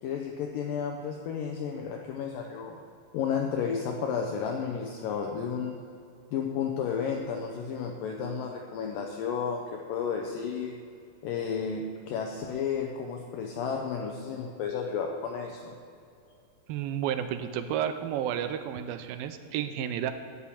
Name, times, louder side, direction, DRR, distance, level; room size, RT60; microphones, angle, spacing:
voice 1, 0.0-2.8 3.1-5.8 6.3-10.8 11.2-15.8, left 6 dB, 75° left, 2 dB, 2.2 m, -32 dB
voice 2, 16.7-20.1, right 10 dB, 80° right, 9 dB, 2.3 m, -31 dB
11.5 x 6.3 x 8.6 m, 2.5 s
omnidirectional pair, 4.4 m